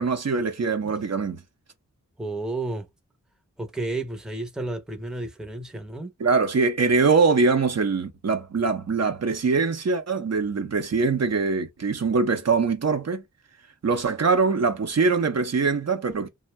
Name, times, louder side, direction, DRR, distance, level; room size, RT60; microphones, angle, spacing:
voice 1, 0.0-1.4 6.2-13.2 13.8-16.3, right 4 dB, 55° right, 0.7 m, -23 dB
voice 2, 2.2-2.9 3.6-6.1, right 2 dB, ahead, 0.6 m, -31 dB
2.6 x 2.0 x 3.1 m
wide cardioid pair, 55°, 32 cm